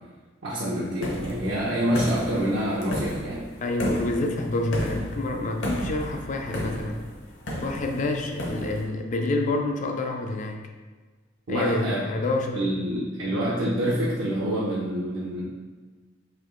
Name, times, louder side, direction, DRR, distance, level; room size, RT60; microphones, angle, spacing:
voice 1, 0.4-3.4 11.5-12.1 12.5-15.5, equal, 75° right, -8 dB, 0.7 m, -26 dB
sound 1, 1.0-8.9, equal, 65° left, 0.8 m, -33 dB
voice 2, 3.6-7.0 7.6-10.6 11.5-12.7, left 2 dB, 40° left, 3 dB, 0.3 m, -28 dB
3.4 x 2.8 x 3.7 m, 1.4 s
head